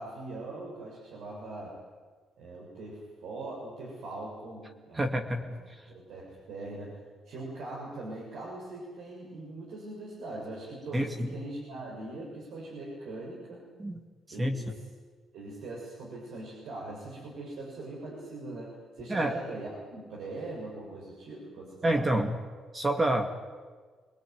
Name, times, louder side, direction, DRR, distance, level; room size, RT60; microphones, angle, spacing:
voice 1, 0.0-1.8 2.4-5.5 5.9-7.0 7.3-13.6 14.3-14.7 15.3-22.2, right 2 dB, 85° right, -4 dB, 7.2 m, -41 dB
voice 2, 4.9-5.8 10.9-11.3 13.8-14.0 14.4-14.6 19.1-19.4 21.8-22.4 22.7-23.3, right 1 dB, 25° right, 4 dB, 2.4 m, -28 dB
26.0 x 19.5 x 9.5 m, 1.5 s
cardioid pair, 90°, 0 cm